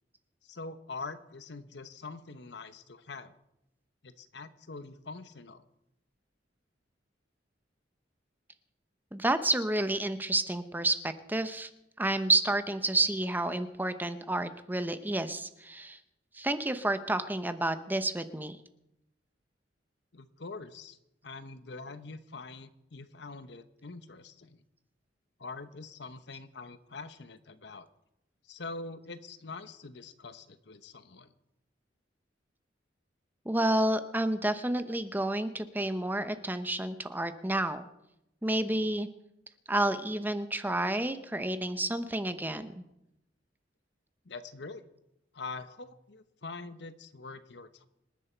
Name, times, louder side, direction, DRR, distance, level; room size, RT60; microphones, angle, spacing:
voice 1, 0.4-3.3 4.0-5.6 20.1-21.0 21.2-24.6 25.4-27.9 28.5-31.3 44.2-44.8 45.3-47.9, left 3 dB, 65° left, 11 dB, 1.0 m, -44 dB
voice 2, 9.1-11.7 12.0-16.0 16.3-18.6 33.5-37.9 38.4-39.1 39.7-42.7, right 1 dB, 10° right, 10 dB, 0.8 m, -30 dB
26.5 x 10.5 x 4.5 m, 0.84 s
head